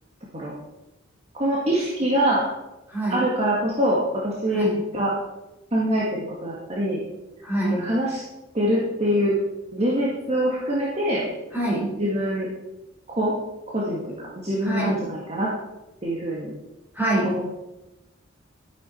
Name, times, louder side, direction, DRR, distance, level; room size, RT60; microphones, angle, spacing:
voice 1, 1.3-2.5 3.1-4.7 4.9-5.1 5.7-7.0 7.7-8.2 8.5-9.4 9.7-11.3 12.0-12.5 13.1-13.3 13.7-15.5 16.0-16.5 17.2-17.4, equal, 30° right, -4 dB, 1.9 m, -24 dB
voice 2, 2.9-3.2 4.5-4.8 7.4-7.8 11.5-11.9 14.6-15.0 16.9-17.3, right 1 dB, 10° right, -5 dB, 5.0 m, -24 dB
12.5 x 9.4 x 4.5 m, 0.96 s
head